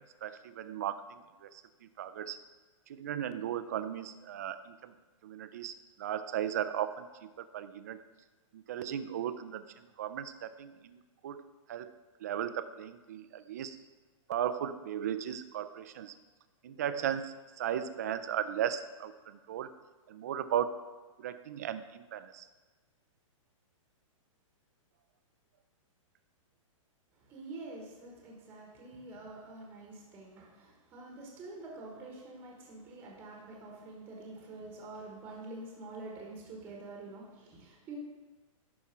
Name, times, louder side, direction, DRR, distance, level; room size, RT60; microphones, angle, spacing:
voice 1, 0.2-2.4 2.9-4.9 5.2-8.0 8.5-11.9 12.2-13.8 14.3-16.1 16.6-19.7 20.1-20.8 21.2-22.5, right 10 dB, 30° right, 12 dB, 0.4 m, -36 dB
voice 2, 27.1-38.0, right 2 dB, 10° right, -1 dB, 1.1 m, -47 dB
11.0 x 4.3 x 5.7 m, 1.3 s
hypercardioid pair, 175°, 17 cm